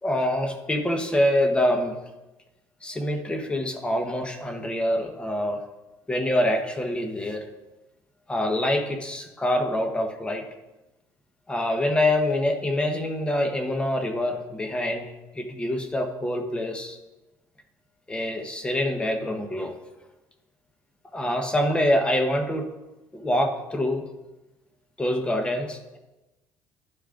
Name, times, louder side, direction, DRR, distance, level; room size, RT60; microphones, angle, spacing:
voice 1, 0.0-2.0 2.8-5.6 6.1-7.4 8.3-10.4 11.5-17.0 18.1-19.7 21.1-22.7 23.1-24.0 25.0-26.0, left 1 dB, 15° left, 5 dB, 1.0 m, -25 dB
11.0 x 10.0 x 2.5 m, 1.0 s
cardioid pair, 125°, 7 cm